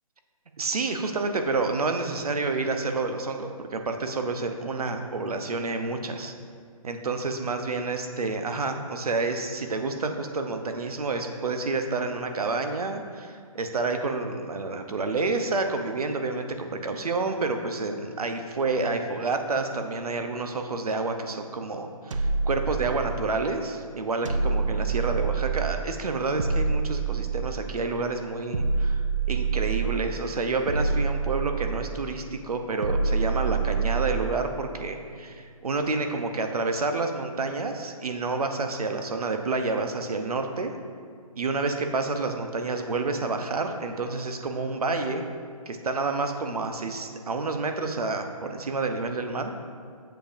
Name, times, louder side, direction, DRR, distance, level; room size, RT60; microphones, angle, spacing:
voice 1, 0.6-6.3 6.8-40.7 41.4-45.2 45.7-49.5, right 3 dB, 85° right, 6 dB, 0.8 m, -29 dB
sound 1, 22.1-23.4 24.3-25.9 26.4-27.8 28.5-30.1 30.7-32.1 32.8-34.4, right 4 dB, 55° right, 0.5 m, -27 dB
7.6 x 6.8 x 2.6 m, 2.2 s
hypercardioid pair, 180°, 19 cm